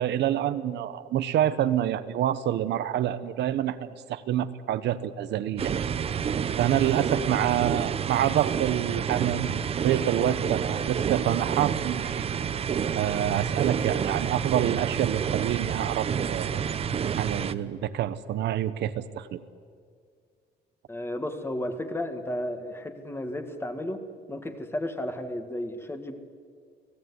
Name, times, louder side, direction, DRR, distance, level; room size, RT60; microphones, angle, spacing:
voice 1, 0.0-5.7 6.6-12.3 12.9-16.6 17.2-19.4, right 11 dB, 70° right, 12 dB, 1.2 m, -27 dB
sound 1, 5.6-17.5, right 7 dB, 35° right, 0.8 m, -29 dB
voice 2, 20.9-24.0 24.3-26.1, left 1 dB, 15° left, 7 dB, 1.9 m, -33 dB
30.0 x 19.0 x 9.7 m, 2.1 s
cardioid pair, 170°, 18 cm